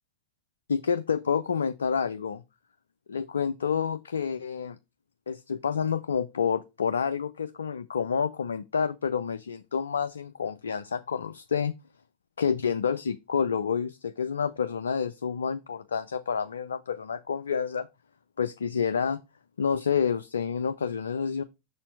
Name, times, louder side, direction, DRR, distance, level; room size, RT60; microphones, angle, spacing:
voice 1, 0.7-2.4 3.1-4.8 5.3-11.7 12.4-17.9 18.4-19.2 19.6-21.4, left 6 dB, 70° left, 0.3 m, -29 dB
6.7 x 4.2 x 4.5 m
figure-of-eight pair, 90°, 0 cm